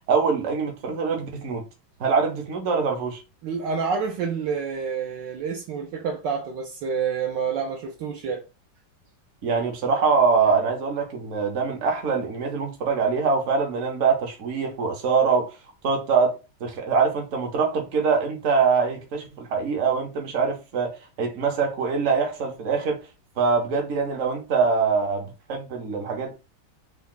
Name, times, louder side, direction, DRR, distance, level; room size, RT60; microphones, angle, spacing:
voice 1, 0.1-1.6 2.0-3.2 9.4-15.5 15.8-20.9 21.2-23.0 23.4-26.3, right 5 dB, 50° right, 0.9 m, -23 dB
voice 2, 3.4-8.4, right 6 dB, 75° right, 1.1 m, -28 dB
3.6 x 2.2 x 3.7 m
omnidirectional pair, 2.2 m